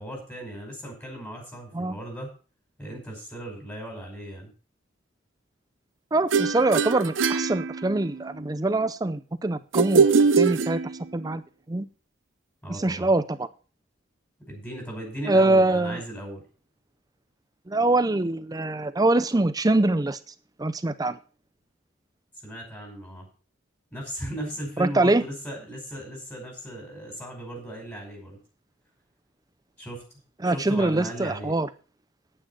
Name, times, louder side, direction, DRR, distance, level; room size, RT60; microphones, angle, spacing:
voice 1, 0.0-2.3 2.8-4.5 12.6-13.1 14.5-16.4 22.4-23.3 23.9-28.4 29.8-30.0 30.4-31.5, equal, 10° left, 1 dB, 5.2 m, -37 dB
voice 2, 6.1-10.1 10.4-10.8 11.1-11.4 11.7-11.9 12.7-13.5 15.3-16.0 17.7-20.2 20.6-21.2 24.8-25.2 30.4-31.7, right 2 dB, 20° right, 13 dB, 0.5 m, -23 dB
sound 1, 6.3-8.3 9.7-11.3, right 5 dB, 80° right, 0.7 m, -22 dB
10.0 x 9.0 x 5.5 m, 0.37 s
head